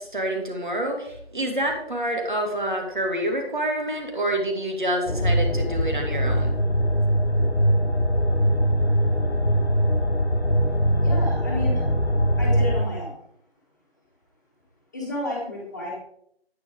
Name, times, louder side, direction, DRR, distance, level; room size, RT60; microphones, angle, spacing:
voice 1, 0.0-6.5, right 1 dB, 50° right, 2 dB, 2.6 m, -27 dB
sound 1, 5.1-12.9, equal, 90° left, 1.7 m, -22 dB
voice 2, 11.0-11.8 12.4-13.2 14.9-15.9, left 1 dB, 15° left, -5 dB, 1.9 m, -31 dB
10.5 x 9.7 x 3.8 m, 0.70 s
figure-of-eight pair, 170°, 32 cm